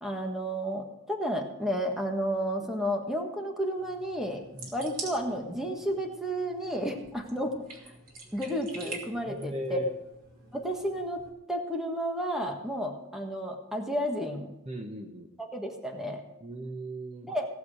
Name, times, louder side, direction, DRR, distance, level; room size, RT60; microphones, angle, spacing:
voice 1, 0.0-4.4 4.7-7.5 8.3-9.8 10.5-11.2 11.5-14.5 15.4-16.2 17.2-17.6, equal, ahead, 2 dB, 1.5 m, -32 dB
sound 1, 3.8-11.3, right 3 dB, 85° right, 2.9 m, -46 dB
voice 2, 9.3-9.9 14.7-15.3 16.4-17.3, right 1 dB, 30° right, 3 dB, 1.1 m, -37 dB
17.5 x 7.1 x 5.0 m, 0.94 s
head